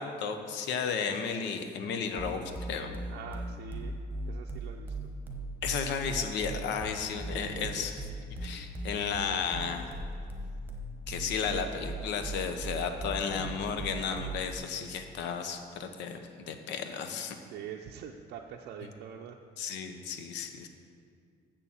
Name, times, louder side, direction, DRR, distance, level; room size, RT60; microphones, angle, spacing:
voice 1, 0.0-3.0 5.6-7.9 8.4-9.9 11.1-17.4 19.6-20.7, left 6 dB, 75° left, 6 dB, 0.9 m, -33 dB
sound 1, 2.2-14.6, right 2 dB, 10° right, 1.0 m, -38 dB
voice 2, 3.1-3.9 4.2-5.1 7.1-7.9 8.6-8.9 17.5-19.4, right 8 dB, 70° right, 1 dB, 0.6 m, -45 dB
7.3 x 6.9 x 7.2 m, 2.2 s
cardioid pair, 155°, 18 cm